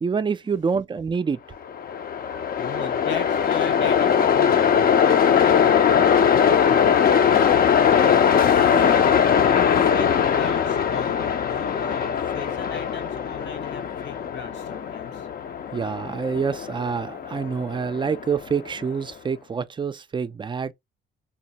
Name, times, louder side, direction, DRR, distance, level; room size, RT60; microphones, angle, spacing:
voice 1, 0.0-1.4 15.7-20.7, right 6 dB, 25° right, 0.4 m, -26 dB
Train, 1.6-18.8, left 7 dB, 50° left, 0.5 m, -21 dB
voice 2, 2.6-7.2 8.4-15.3, left 5 dB, 65° left, 1.2 m, -37 dB
3.9 x 2.0 x 2.8 m
cardioid pair, 90°, 20 cm